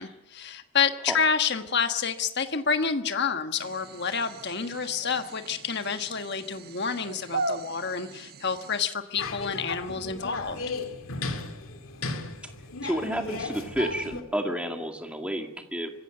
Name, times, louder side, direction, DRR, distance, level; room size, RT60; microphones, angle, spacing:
voice 1, 0.0-10.6, left 6 dB, 50° left, 7 dB, 1.4 m, -28 dB
sound 1, 3.5-8.9, right 3 dB, 45° right, 1.1 m, -38 dB
sound 2, 9.2-14.2, left 3 dB, 75° left, 2.5 m, -35 dB
voice 2, 12.8-15.9, equal, 5° right, 4 dB, 2.1 m, -30 dB
25.0 x 15.5 x 7.9 m, 0.88 s
head